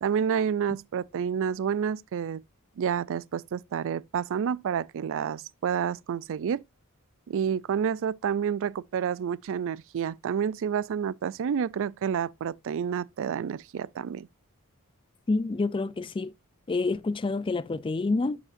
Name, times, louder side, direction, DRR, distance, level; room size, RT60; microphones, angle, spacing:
voice 1, 0.0-2.4 2.8-6.6 7.3-14.3, right 7 dB, 60° right, 0.3 m, -29 dB
voice 2, 15.3-16.3 16.7-18.4, left 3 dB, 25° left, 0.3 m, -28 dB
11.5 x 4.9 x 2.5 m
head